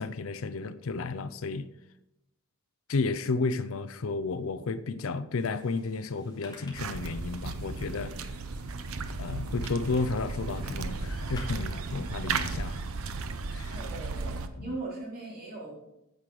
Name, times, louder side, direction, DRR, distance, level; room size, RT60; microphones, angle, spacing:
voice 1, 0.0-1.7 2.9-8.1 9.2-12.8 13.5-13.8 14.3-14.8, left 3 dB, 65° left, 0.5 m, -32 dB
sound 1, 5.4-13.0, left 2 dB, 20° left, 2.4 m, -54 dB
sound 2, 6.7-14.5, right 4 dB, 80° right, 0.7 m, -35 dB
voice 2, 13.7-15.8, right 2 dB, 45° right, 3.8 m, -39 dB
9.6 x 7.6 x 4.9 m
head